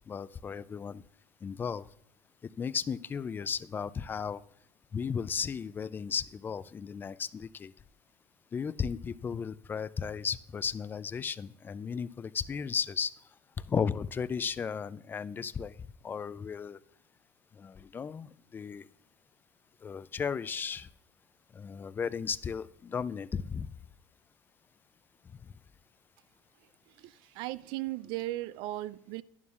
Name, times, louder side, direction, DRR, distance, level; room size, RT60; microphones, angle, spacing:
voice 1, 0.1-1.0 1.4-1.9 2.4-4.4 4.9-7.7 8.5-13.1 13.7-15.8 16.0-16.8 17.5-18.9 19.8-20.9 21.5-23.7 25.4-25.5, left 6 dB, 25° left, 0.4 m, -35 dB
voice 2, 27.0-29.2, right 16 dB, 70° right, 0.4 m, -37 dB
11.0 x 11.0 x 2.4 m
supercardioid pair, 110°, 8 cm